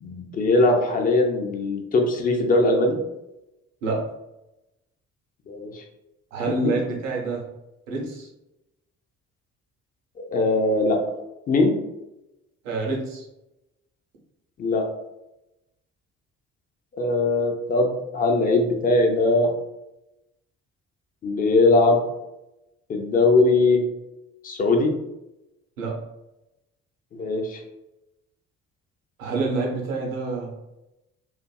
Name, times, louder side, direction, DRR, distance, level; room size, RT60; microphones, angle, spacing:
voice 1, 0.0-3.0 5.5-5.8 10.3-11.0 11.5-11.7 14.6-14.8 17.0-19.5 21.2-22.0 22.9-23.8 24.4-24.9 27.1-27.6, left 2 dB, 20° left, 3 dB, 0.4 m, -20 dB
voice 2, 6.3-7.5 7.9-8.3 12.6-13.2 25.8-26.0 29.2-30.6, right 3 dB, 70° right, -1 dB, 0.7 m, -27 dB
2.5 x 2.4 x 2.2 m, 0.92 s
figure-of-eight pair, 45°, 40 cm